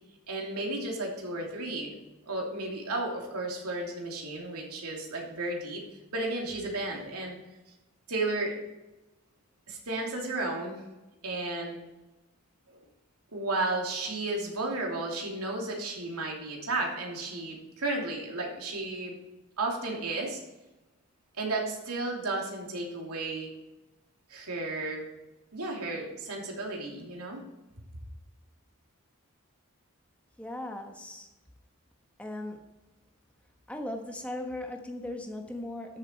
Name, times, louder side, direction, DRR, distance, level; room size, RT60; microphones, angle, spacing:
voice 1, 0.3-1.9 2.3-5.8 6.1-7.4 8.1-8.6 9.7-10.8 11.2-11.8 12.7-12.8 13.3-19.1 19.6-20.4 21.4-23.5 24.3-25.1 25.5-27.4, right 2 dB, 90° right, -1 dB, 2.9 m, -33 dB
voice 2, 30.4-31.3 32.2-32.6 33.7-36.0, left 1 dB, 5° left, 3 dB, 1.2 m, -38 dB
13.5 x 7.1 x 4.5 m, 1.0 s
head